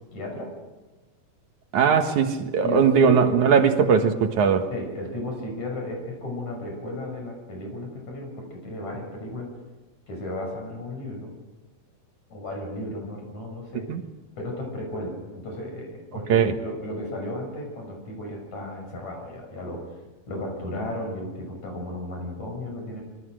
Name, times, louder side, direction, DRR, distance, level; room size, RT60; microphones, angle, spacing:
voice 1, 0.1-0.6 2.6-2.8 3.1-3.2 4.7-9.5 10.1-11.3 12.3-13.9 14.4-19.9 20.3-23.0, left 1 dB, 60° left, 3 dB, 7.6 m, -34 dB
voice 2, 1.7-4.7 13.9-14.0 16.3-16.5, right 6 dB, 70° right, 6 dB, 2.8 m, -19 dB
26.0 x 23.0 x 6.5 m, 1.1 s
omnidirectional pair, 3.8 m